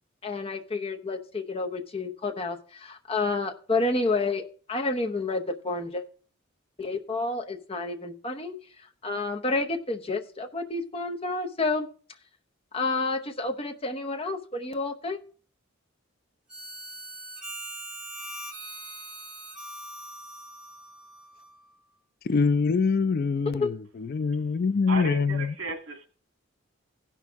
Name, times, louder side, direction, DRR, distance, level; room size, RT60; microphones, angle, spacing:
voice 1, 0.2-6.0 6.8-8.6 9.0-11.9 12.7-15.2 23.5-23.7, left 3 dB, 30° left, 0.9 m, -29 dB
Harmonica, 16.5-21.7, right 1 dB, 5° right, 3.1 m, -41 dB
voice 2, 22.2-25.6, left 5 dB, 50° left, 0.4 m, -24 dB
voice 3, 24.9-26.1, right 3 dB, 75° right, 1.8 m, -34 dB
15.5 x 6.1 x 3.6 m
head